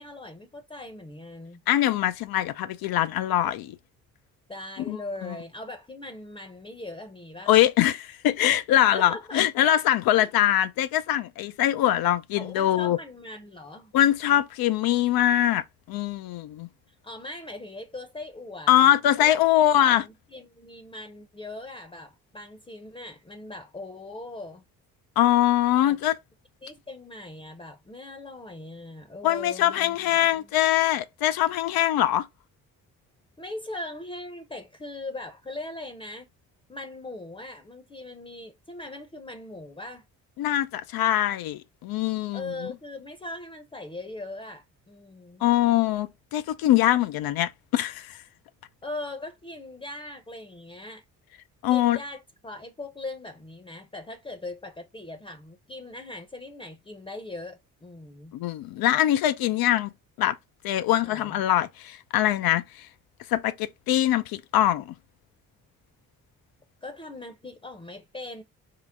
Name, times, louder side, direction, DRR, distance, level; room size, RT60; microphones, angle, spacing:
voice 1, 0.0-1.6 4.5-7.5 8.9-9.5 10.2-10.3 12.4-13.9 16.9-24.6 25.8-26.0 26.6-30.5 33.4-36.3 36.7-40.1 42.3-45.4 48.8-51.0 51.7-58.3 61.0-61.4 66.8-68.4, left 2 dB, 15° left, 0.7 m, -40 dB
voice 2, 1.7-3.8 4.9-5.0 5.2-5.3 7.5-13.0 13.9-16.7 18.7-20.0 25.2-26.1 29.2-32.3 40.4-42.5 45.4-48.2 51.6-52.0 58.3-59.9 60.2-60.4 60.6-62.9 63.3-64.9, left 13 dB, 65° left, 0.5 m, -23 dB
3.8 x 2.0 x 3.5 m
supercardioid pair, 55°, 39 cm